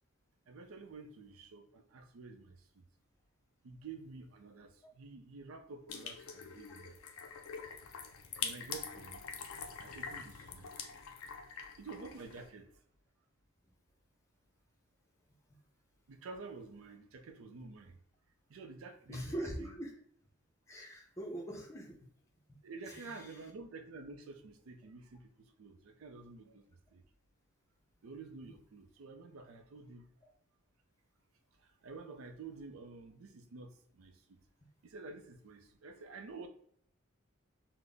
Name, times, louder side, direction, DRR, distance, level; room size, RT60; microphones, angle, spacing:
voice 1, 0.5-2.9 3.6-7.0 8.4-9.2 9.8-10.7 11.8-12.8 16.1-18.0 18.5-19.7 22.6-27.0 28.0-30.0 31.6-34.4 34.8-36.5, right 4 dB, 80° right, 6 dB, 0.5 m, -50 dB
sound 1, 5.9-12.5, left 6 dB, 90° left, 0.5 m, -44 dB
voice 2, 19.1-19.9 20.7-22.0 22.5-22.6 22.9-23.4, right 1 dB, 15° left, -1 dB, 0.5 m, -42 dB
3.8 x 2.0 x 3.3 m, 0.62 s
head